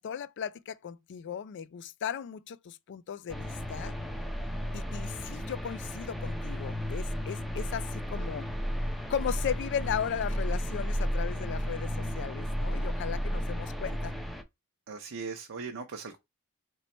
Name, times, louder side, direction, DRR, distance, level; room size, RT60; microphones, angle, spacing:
voice 1, 0.0-4.0 4.7-8.5 9.1-14.2, left 8 dB, 55° left, 0.3 m, -36 dB
sound 1, 3.3-14.4, equal, ahead, 0.5 m, -33 dB
voice 2, 14.9-16.2, right 5 dB, 60° right, 0.6 m, -39 dB
4.0 x 3.1 x 4.2 m
head